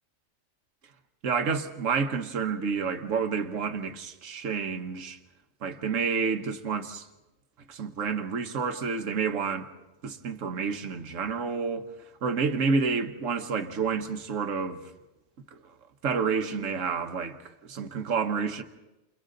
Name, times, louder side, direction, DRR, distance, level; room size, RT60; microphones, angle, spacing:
voice 1, 1.2-5.2 5.6-7.1 7.7-9.7 10.0-11.9 12.2-14.8 15.5-15.6 16.0-18.6, right 5 dB, 90° right, 1.5 m, -29 dB
29.5 x 28.5 x 3.8 m
omnidirectional pair, 1.3 m